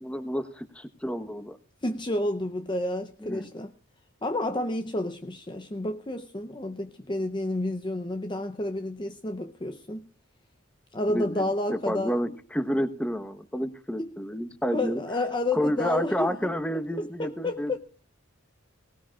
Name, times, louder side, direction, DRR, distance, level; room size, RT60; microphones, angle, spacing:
voice 1, 0.0-1.6 3.2-3.5 11.1-11.4 11.7-15.0 15.5-17.8, equal, 5° left, 1.0 m, -30 dB
voice 2, 1.8-3.7 4.2-10.1 10.9-12.2 14.0-14.1 14.6-16.5 17.2-17.8, left 2 dB, 25° left, 0.6 m, -30 dB
19.5 x 18.5 x 2.4 m
head